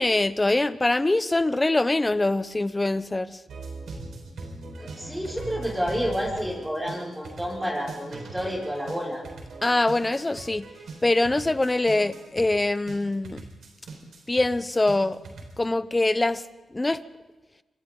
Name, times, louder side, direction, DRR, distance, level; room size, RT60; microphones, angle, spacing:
voice 1, 0.0-3.4 9.6-10.6 11.0-13.4 14.3-15.2 15.6-16.4 16.7-17.0, left 2 dB, 20° left, 14 dB, 0.9 m, -23 dB
sound 1, 3.5-15.6, right 3 dB, 75° right, 5.0 m, -40 dB
voice 2, 4.8-9.2, equal, 5° right, -4 dB, 6.2 m, -30 dB
27.0 x 25.5 x 4.0 m, 1.2 s
cardioid pair, 90°, 0 cm